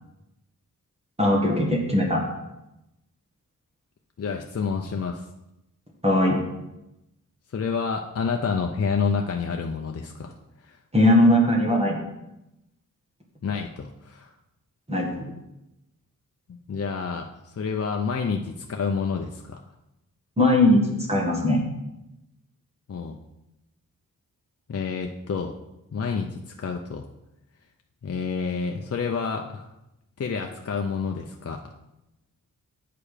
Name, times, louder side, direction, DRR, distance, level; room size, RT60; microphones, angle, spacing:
voice 1, 1.2-2.2 6.0-6.4 10.9-12.0 14.9-15.3 20.4-21.6, left 1 dB, 20° right, -2 dB, 1.6 m, -20 dB
voice 2, 4.2-5.3 7.5-10.3 10.6-10.8 13.4-14.3 16.7-19.6 22.9-23.2 24.7-25.5 25.9-27.1 28.0-29.7 30.2-31.7, left 5 dB, 50° left, 3 dB, 0.6 m, -29 dB
8.5 x 6.8 x 5.0 m, 0.91 s
wide cardioid pair, 130°, 33 cm